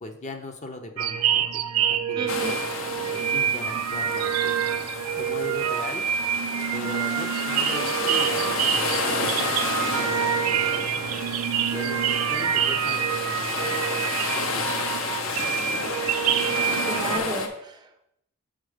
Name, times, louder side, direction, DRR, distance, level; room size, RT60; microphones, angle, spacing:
voice 1, 0.0-2.6 3.1-4.6 5.2-6.0 6.7-10.5 11.7-14.7 15.1-15.5, left 2 dB, 30° left, 5 dB, 0.7 m, -39 dB
sound 1, 1.0-17.2, right 9 dB, 90° right, 0.4 m, -26 dB
voice 2, 2.2-2.6 16.8-18.1, right 2 dB, 20° right, 3 dB, 0.6 m, -34 dB
sound 2, 2.3-17.5, left 3 dB, 65° left, 0.8 m, -30 dB
6.5 x 4.3 x 5.0 m, 0.76 s
head